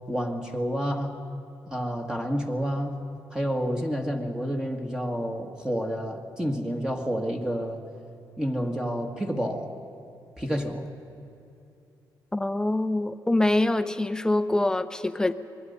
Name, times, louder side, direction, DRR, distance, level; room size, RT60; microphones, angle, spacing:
voice 1, 0.1-1.2 1.7-3.0 3.3-7.8 8.4-9.7 10.4-10.9, equal, 10° right, 2 dB, 1.8 m, -29 dB
voice 2, 12.3-15.3, left 2 dB, 10° left, 11 dB, 0.8 m, -24 dB
26.0 x 21.0 x 5.5 m, 2.7 s
cardioid pair, 115°, 8 cm